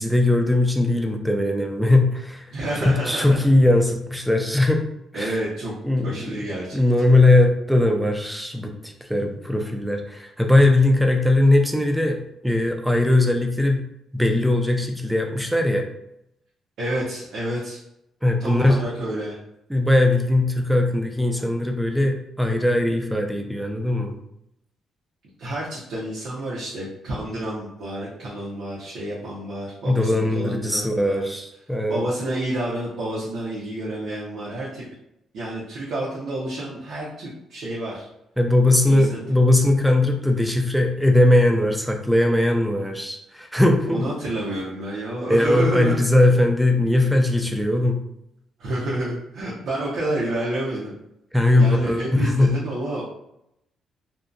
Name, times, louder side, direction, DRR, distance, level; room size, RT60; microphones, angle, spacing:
voice 1, 0.0-2.5 2.8-4.8 5.1-5.4 5.8-6.4 6.7-12.2 12.4-13.8 14.1-15.9 18.2-18.8 19.7-24.1 29.9-32.0 38.4-44.0 45.3-48.0 51.3-52.5, left 1 dB, 5° right, 3 dB, 0.4 m, -19 dB
voice 2, 2.5-3.4 5.1-5.7 6.0-7.2 16.8-17.8 18.4-19.4 25.4-31.4 31.9-34.8 35.3-38.1 38.8-39.4 43.9-46.0 46.3-46.4 47.0-47.1 48.6-51.0 51.6-53.1, right 1 dB, 75° right, -6 dB, 0.7 m, -29 dB
2.7 x 2.1 x 2.5 m, 0.80 s
cardioid pair, 115°, 0 cm